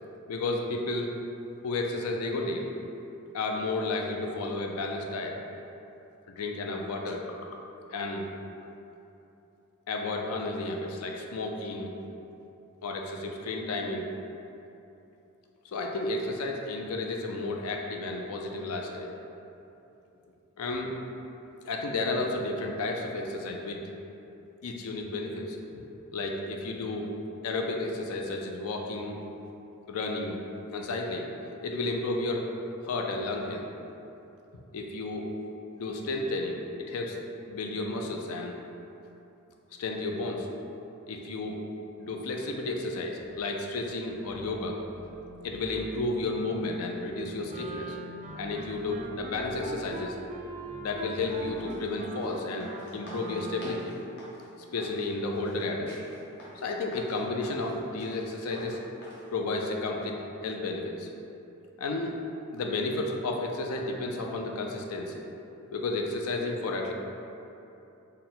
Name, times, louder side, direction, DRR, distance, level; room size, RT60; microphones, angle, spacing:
voice 1, 0.3-1.1 1.6-2.7 3.3-5.4 6.4-7.6 7.9-8.3 9.9-11.9 12.8-14.1 15.6-19.2 20.6-20.9 21.6-23.8 24.6-25.6 26.1-29.2 29.9-30.4 30.7-31.3 31.6-32.5 32.8-33.7 34.7-35.3 35.8-37.2 37.5-38.6 39.8-40.5 41.1-41.6 42.0-44.8 45.4-48.0 48.3-50.2 50.8-53.9 54.7-56.0 56.6-58.8 59.3-60.2 60.4-61.1 61.8-62.2 62.5-65.2 65.7-66.9, left 2 dB, 70° left, 1 dB, 0.4 m, -32 dB
sound 1, 43.1-43.5 44.0-45.9 46.2-51.8, equal, 80° right, 0.7 m, -49 dB
Wind instrument woodwind instrument, 47.5-54.1, right 3 dB, 35° right, 0.4 m, -42 dB
sound 2, 51.1-59.2, equal, 50° left, 0.9 m, -48 dB
4.2 x 2.1 x 3.8 m, 2.9 s
head